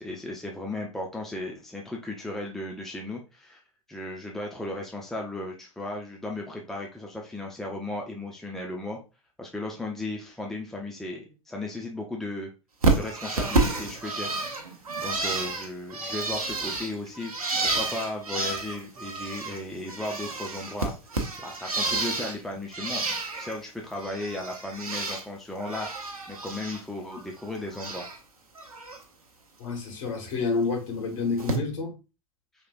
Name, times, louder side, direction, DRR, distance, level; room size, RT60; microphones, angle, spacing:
voice 1, 0.0-3.6 3.9-9.0 9.4-12.5 12.9-14.3 15.0-17.3 17.6-20.9 21.4-23.0 23.4-25.9 26.3-28.1, left 2 dB, ahead, 0 dB, 0.7 m, -35 dB
Bird, 12.8-19.6 19.9-22.4 22.7-23.6 23.9-25.2 25.6-26.8 27.1-28.2 28.6-29.0 30.3-30.4 31.4-31.6, right 3 dB, 80° right, 0.9 m, -30 dB
voice 2, 29.6-31.9, left 4 dB, 55° left, 1 dB, 1.9 m, -29 dB
4.7 x 3.3 x 2.5 m, 0.30 s
figure-of-eight pair, 95°, 18 cm